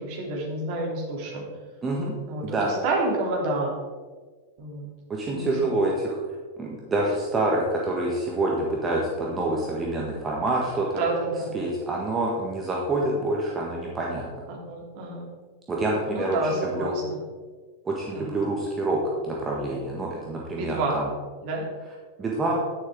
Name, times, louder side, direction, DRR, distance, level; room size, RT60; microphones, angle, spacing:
voice 1, 0.0-1.4 2.3-3.7 4.6-4.9 5.3-5.6 11.0-11.5 14.5-15.3 16.1-17.2 18.1-18.4 20.6-21.0 21.4-21.6, right 2 dB, 45° right, -1 dB, 3.0 m, -29 dB
voice 2, 1.8-2.1 2.4-2.7 5.1-6.2 6.6-10.9 11.5-14.4 15.7-16.9 17.9-21.1 22.2-22.6, right 2 dB, 20° right, -2 dB, 1.6 m, -27 dB
10.5 x 9.8 x 3.7 m, 1.5 s
figure-of-eight pair, 90°, 0 cm